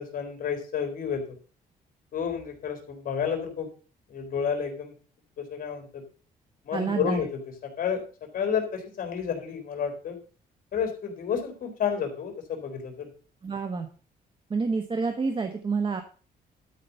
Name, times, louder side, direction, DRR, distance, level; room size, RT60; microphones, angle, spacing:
voice 1, 0.0-1.4 2.1-3.7 4.1-4.9 5.4-6.0 6.6-7.4 7.8-8.0 8.3-10.2 10.7-13.1, left 7 dB, 60° left, 4 dB, 3.7 m, -30 dB
voice 2, 6.7-7.2 13.4-13.9 14.5-16.0, right 4 dB, 30° right, 6 dB, 1.2 m, -28 dB
12.0 x 5.1 x 6.8 m, 0.40 s
cardioid pair, 120°, 16 cm